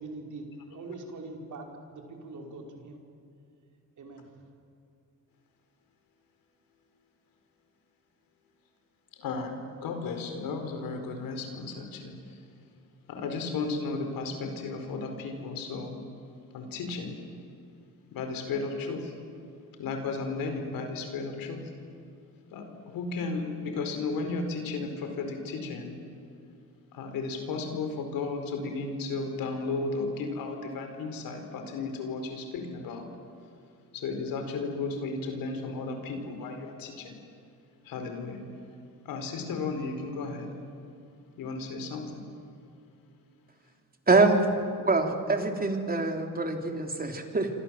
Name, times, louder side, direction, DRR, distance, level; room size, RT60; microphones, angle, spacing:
voice 1, 0.0-3.0 4.0-4.3, right 2 dB, 60° right, 2 dB, 5.4 m, -42 dB
voice 2, 9.2-12.1 13.1-16.0 16.5-17.1 18.1-19.1 19.8-21.6 22.5-26.0 26.9-33.1 33.9-37.2 37.8-38.4 39.0-40.5 41.4-42.2, left 3 dB, 85° left, 5 dB, 4.7 m, -34 dB
voice 3, 44.1-44.4 44.8-47.5, right 3 dB, 25° right, 4 dB, 3.7 m, -25 dB
28.0 x 26.0 x 7.7 m, 2.6 s
cardioid pair, 85°, 34 cm